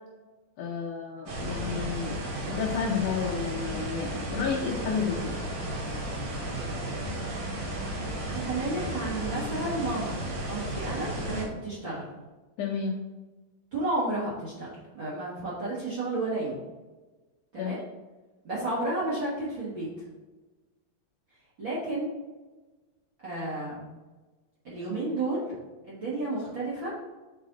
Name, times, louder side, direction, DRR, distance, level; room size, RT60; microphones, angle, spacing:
voice 1, 0.6-5.4 12.6-13.0 17.6-17.8, left 6 dB, 80° left, -3 dB, 1.8 m, -31 dB
sound 1, 1.3-11.4, right 1 dB, 65° right, 3.2 m, -34 dB
voice 2, 8.2-10.2 10.4-12.0 13.7-14.7 14.9-16.6 17.5-17.8 18.4-19.9 21.6-22.1 23.2-24.0 24.6-25.6 25.9-26.9, right 2 dB, 45° right, -9 dB, 1.7 m, -32 dB
6.1 x 4.8 x 4.0 m, 1.2 s
omnidirectional pair, 4.5 m